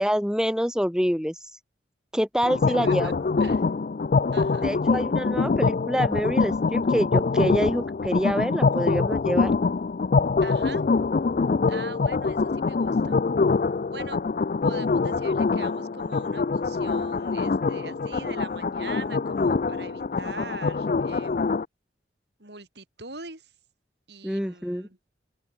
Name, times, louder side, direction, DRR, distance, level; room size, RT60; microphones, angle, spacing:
voice 1, 0.0-1.3 2.1-3.1 4.6-9.5 24.2-24.9, equal, 5° right, 3.1 m, -26 dB
sound 1, 2.4-21.6, left 4 dB, 45° left, 0.4 m, -24 dB
voice 2, 2.7-3.1 3.4-3.7 4.3-4.7 10.4-10.9 11.7-13.2 13.9-14.2 14.6-21.6 22.4-23.5 24.1-25.0, right 3 dB, 70° right, 5.4 m, -42 dB
open air
head